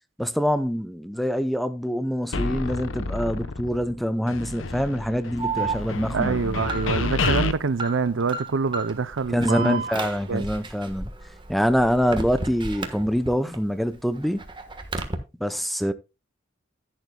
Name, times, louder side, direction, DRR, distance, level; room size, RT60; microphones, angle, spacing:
voice 1, 0.2-6.6 9.3-11.1 11.5-14.4 15.4-15.9, equal, ahead, 0.6 m, -25 dB
sound 1, 2.3-4.0 4.3-7.5, left 3 dB, 75° left, 0.9 m, -29 dB
Alarm, 5.4-13.5 13.9-15.1, right 3 dB, 25° right, 1.3 m, -33 dB
voice 2, 6.1-9.8 10.3-10.5, right 5 dB, 70° right, 0.6 m, -25 dB
11.0 x 11.0 x 2.2 m
head